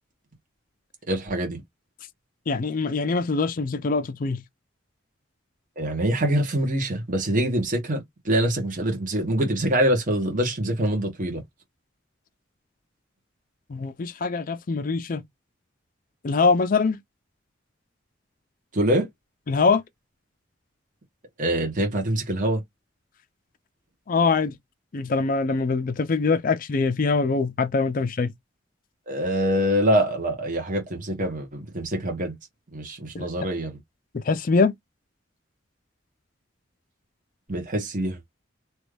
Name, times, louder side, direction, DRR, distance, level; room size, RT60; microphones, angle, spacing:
voice 1, 1.1-1.6 5.8-11.4 18.7-19.1 21.4-22.6 29.1-32.4 32.7-33.8 37.5-38.2, right 1 dB, 45° right, 1.3 m, -24 dB
voice 2, 2.5-4.4 13.7-15.2 16.2-17.0 19.5-19.8 24.1-24.6 24.9-28.3 33.1-33.3 34.1-34.7, left 4 dB, 45° left, 0.4 m, -23 dB
3.0 x 2.5 x 3.3 m
head